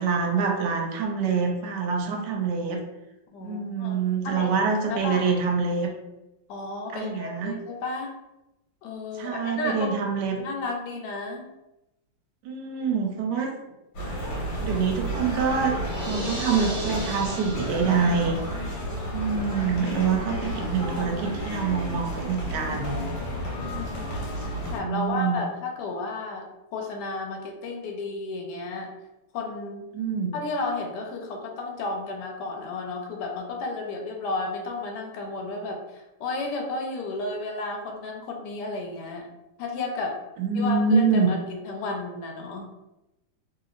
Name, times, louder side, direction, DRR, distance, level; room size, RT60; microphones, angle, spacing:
voice 1, 0.0-2.8 3.4-5.9 6.9-7.6 9.2-10.4 12.4-13.7 14.6-15.7 16.0-18.4 19.1-23.1 24.4-25.4 29.9-30.3 40.4-41.3, right 5 dB, 75° right, 2 dB, 1.1 m, -26 dB
voice 2, 3.3-4.0 4.2-4.5 4.9-5.3 6.5-8.1 8.8-9.9 10.4-11.5 23.6-24.2 24.7-28.9 29.3-29.9 30.3-39.3 39.6-40.2 40.5-42.7, left 3 dB, 70° left, 1 dB, 1.1 m, -33 dB
sound 1, 13.9-24.8, equal, 90° left, 1.5 m, -31 dB
sound 2, 15.8-18.3, right 1 dB, 55° right, 0.6 m, -37 dB
2.9 x 2.8 x 2.4 m, 0.94 s
omnidirectional pair, 2.0 m